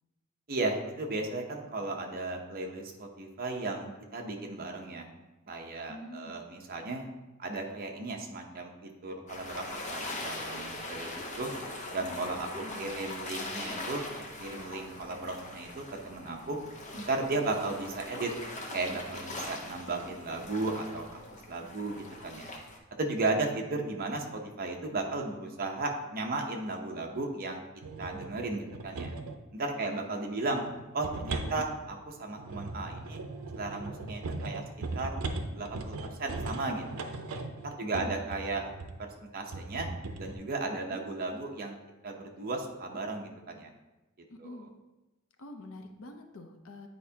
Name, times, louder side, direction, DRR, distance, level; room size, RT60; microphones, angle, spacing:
voice 1, 0.5-5.1 5.5-7.1 7.4-9.6 9.9-11.5 11.9-14.1 14.4-16.6 16.9-18.3 18.7-21.2 21.5-22.5 23.0-27.6 28.0-29.1 29.5-30.6 30.9-33.2 33.5-34.6 34.9-35.1 35.5-37.1 37.6-38.7 39.0-39.9 40.2-41.8 42.0-43.7 44.4-44.6, right 2 dB, 45° right, 2 dB, 0.8 m, -35 dB
voice 2, 5.9-6.4 12.1-12.3 12.6-13.0 29.8-30.1 31.4-31.7 37.9-38.2 40.9-41.0 44.3-44.7 45.4-46.9, left 1 dB, 65° left, 5 dB, 0.7 m, -46 dB
sound 1, 9.3-22.8, left 2 dB, 35° left, 0.8 m, -41 dB
sound 2, 27.8-29.4 30.5-39.0 39.5-40.3, right 2 dB, 80° right, 0.6 m, -38 dB
9.0 x 4.5 x 2.8 m, 1.0 s
head